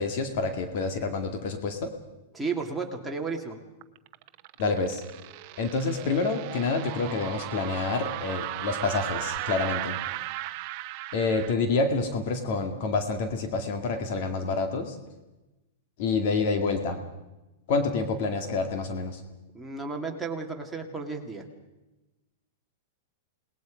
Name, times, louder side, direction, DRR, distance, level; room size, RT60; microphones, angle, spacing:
voice 1, 0.0-1.9 4.6-5.0 5.6-10.0 11.1-15.0 16.0-17.1 17.7-19.2, left 3 dB, 50° left, 6 dB, 2.1 m, -28 dB
voice 2, 2.3-3.6 19.5-21.5, right 4 dB, 5° right, 0 dB, 2.3 m, -33 dB
sound 1, 3.8-11.5, right 16 dB, 40° right, 0.9 m, -36 dB
29.0 x 20.0 x 5.2 m, 1.0 s
supercardioid pair, 165°, 0 cm